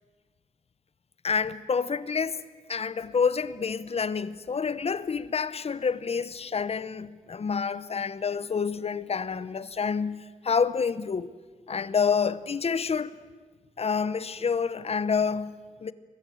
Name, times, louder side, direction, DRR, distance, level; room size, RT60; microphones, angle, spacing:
voice 1, 1.2-2.4 2.7-11.3 11.7-13.1 13.8-15.9, left 5 dB, 45° left, 0.9 m, -28 dB
23.5 x 21.0 x 9.3 m
wide cardioid pair, 175°, 15 cm